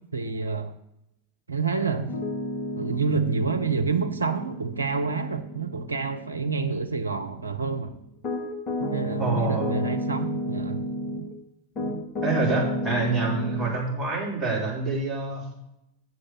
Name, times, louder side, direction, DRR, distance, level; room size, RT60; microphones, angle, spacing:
voice 1, 0.1-0.7 1.5-2.2 2.8-7.9 8.9-10.8, right 5 dB, 80° right, 8 dB, 0.8 m, -28 dB
Piano, 2.0-11.3 11.8-13.8, equal, 35° left, 1.7 m, -32 dB
voice 2, 9.2-9.8 12.2-15.5, right 3 dB, 10° right, -5 dB, 4.2 m, -27 dB
8.0 x 6.6 x 7.3 m, 0.85 s
figure-of-eight pair, 90°, 0 cm